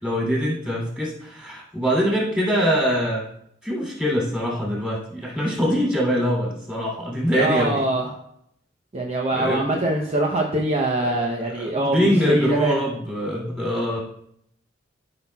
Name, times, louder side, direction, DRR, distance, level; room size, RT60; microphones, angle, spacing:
voice 1, 0.0-3.2 3.6-7.8 9.3-9.7 11.0-11.2 11.6-14.0, equal, 5° right, -4 dB, 2.8 m, -23 dB
voice 2, 7.4-8.1 8.9-12.8, right 1 dB, 35° right, 0 dB, 0.7 m, -23 dB
13.0 x 5.8 x 2.3 m, 0.72 s
head